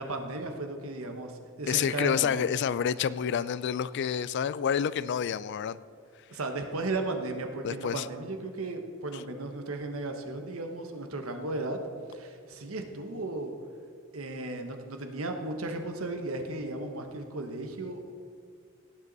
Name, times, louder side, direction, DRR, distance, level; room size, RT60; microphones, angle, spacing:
voice 1, 0.0-2.4 6.3-11.8 12.1-13.5 14.1-18.1, right 2 dB, 85° right, 5 dB, 1.2 m, -35 dB
voice 2, 1.7-5.8 7.6-8.1, left 8 dB, 55° left, 17 dB, 0.3 m, -28 dB
17.5 x 7.9 x 4.1 m, 2.2 s
head